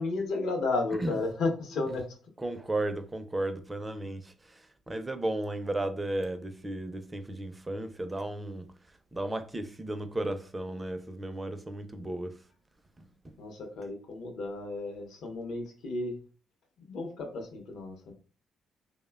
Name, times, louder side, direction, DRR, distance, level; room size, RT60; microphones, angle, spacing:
voice 1, 0.0-2.2 11.9-12.1 13.4-16.2 16.9-18.1, left 3 dB, 75° left, 0.7 m, -33 dB
voice 2, 2.4-8.7 9.1-12.4 13.0-13.4, right 1 dB, 20° right, 0.4 m, -34 dB
3.1 x 2.1 x 2.2 m
cardioid pair, 90°, 0 cm